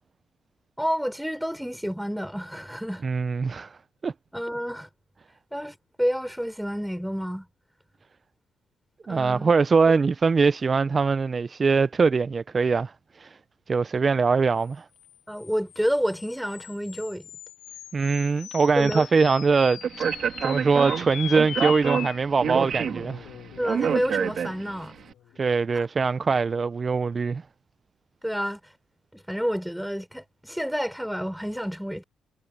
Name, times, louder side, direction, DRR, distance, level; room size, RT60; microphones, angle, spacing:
voice 1, 0.8-3.0 4.3-4.9 5.5-7.5 9.1-9.5 15.3-17.3 18.7-19.1 23.6-25.0 25.7-25.8 28.2-28.6 29.1-32.0, equal, ahead, 5.4 m, -29 dB
voice 2, 3.0-3.8 4.0-4.1 9.1-13.4 13.7-14.9 17.9-23.3 25.4-27.4, right 4 dB, 35° right, 0.5 m, -23 dB
sound 1, 14.9-25.6, left 12 dB, 80° left, 6.1 m, -41 dB
Speech, 19.8-24.9, right 7 dB, 60° right, 3.1 m, -28 dB
cardioid pair, 90°, 0 cm